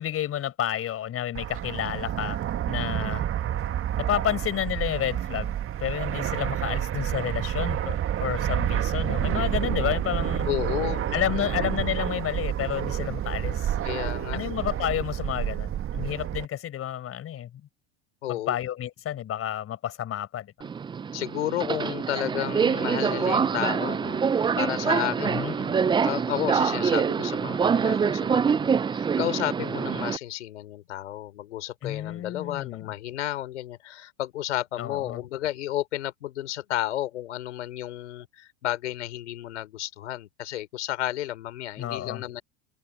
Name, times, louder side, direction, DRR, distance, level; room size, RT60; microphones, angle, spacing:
voice 1, 0.0-3.3 4.0-10.5 11.1-13.8 14.3-17.5 18.3-20.7 25.2-25.5 31.8-32.9 34.8-35.2 41.8-42.2, left 11 dB, 40° left, 5.0 m, -30 dB
Fixed-wing aircraft airplane, 1.3-16.5, right 11 dB, 40° right, 2.0 m, -29 dB
voice 2, 10.4-11.6 13.8-14.4 18.2-18.6 21.1-42.4, left 13 dB, 80° left, 5.3 m, -32 dB
Subway metro underground, 20.6-30.2, right 6 dB, 15° right, 0.4 m, -25 dB
open air
hypercardioid pair, 85°, 35 cm